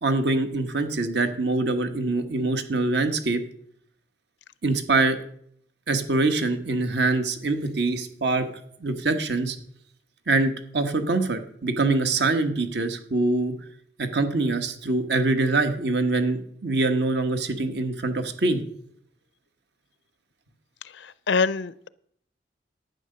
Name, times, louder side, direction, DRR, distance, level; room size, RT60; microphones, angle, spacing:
voice 1, 0.0-3.4 4.6-5.2 5.9-8.4 8.8-9.6 10.3-13.5 14.0-18.6, right 3 dB, 70° right, 8 dB, 1.3 m, -24 dB
voice 2, 20.8-21.9, left 4 dB, 80° left, 17 dB, 0.5 m, -26 dB
11.0 x 9.4 x 6.6 m, 0.66 s
head